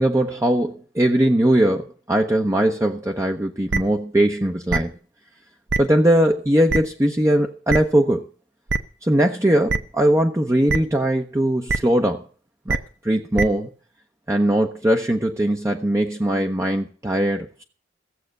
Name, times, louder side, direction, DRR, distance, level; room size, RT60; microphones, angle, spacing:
voice 1, 0.0-4.9 5.8-8.2 9.0-12.3 12.7-12.8 13.0-13.7 14.3-17.6, right 1 dB, 15° right, 2 dB, 0.9 m, -20 dB
sound 1, 3.7-3.8 4.7-4.8 5.7-5.8 6.7-6.8 7.7-7.8 8.7-8.8 9.7-9.8 10.7-10.8 11.7-11.8 12.7-12.8 13.4-13.5, right 3 dB, 80° right, 0.9 m, -21 dB
15.5 x 7.8 x 6.6 m, 0.40 s
head